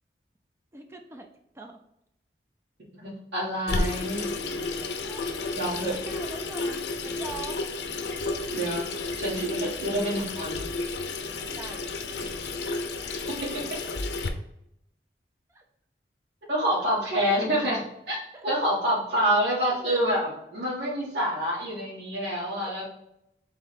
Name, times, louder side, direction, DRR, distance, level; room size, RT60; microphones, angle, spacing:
voice 1, 0.7-1.3 1.5-1.8 4.6-5.3 6.1-7.6 11.5-12.0 15.5-15.6 17.3-17.4 18.3-18.4 18.9-19.0 19.9-20.1 22.6-22.7, right 3 dB, 15° right, 4 dB, 0.3 m, -43 dB
voice 2, 3.0-4.4 5.5-6.0 8.5-8.9 9.2-10.6 16.5-17.8 18.1-18.2 18.4-22.8, equal, 90° right, -6 dB, 1.6 m, -27 dB
Water tap faucet / Sink (filling or washing), 3.7-14.3, left 3 dB, 75° left, 0.5 m, -32 dB
3.9 x 3.1 x 4.1 m, 0.80 s
head